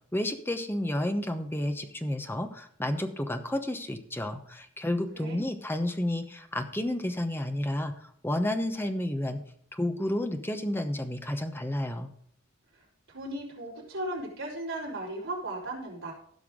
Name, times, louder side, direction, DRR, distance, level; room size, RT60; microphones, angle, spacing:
voice 1, 0.1-7.9 8.2-9.4 9.7-12.1, left 1 dB, 10° left, 7 dB, 0.9 m, -31 dB
voice 2, 5.1-5.5 13.1-16.1, right 1 dB, 70° right, -4 dB, 4.5 m, -36 dB
16.0 x 5.8 x 3.7 m, 0.66 s
head